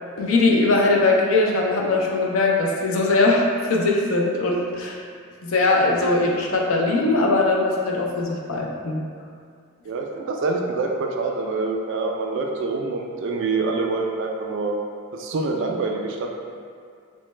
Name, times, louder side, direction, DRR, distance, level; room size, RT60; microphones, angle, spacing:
voice 1, 0.2-5.0 5.4-9.0, left 2 dB, 75° left, -1 dB, 0.5 m, -20 dB
voice 2, 9.9-14.7 15.1-16.3, right 3 dB, 60° right, 1 dB, 0.3 m, -26 dB
3.1 x 2.1 x 3.1 m, 2.3 s
head